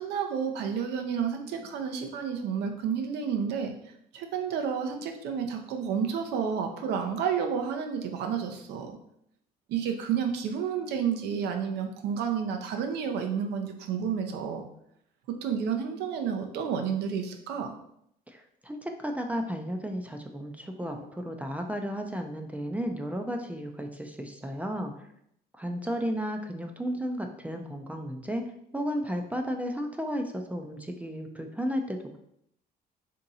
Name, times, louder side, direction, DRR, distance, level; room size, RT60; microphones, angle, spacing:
voice 1, 0.0-3.7 4.1-8.9 9.7-14.6 15.4-17.7 20.9-21.0, right 7 dB, 80° right, 5 dB, 0.7 m, -30 dB
voice 2, 18.3-25.1 25.5-28.5 28.7-32.2, equal, 10° right, 4 dB, 0.4 m, -33 dB
3.6 x 2.8 x 4.0 m, 0.74 s
cardioid pair, 110°, 17 cm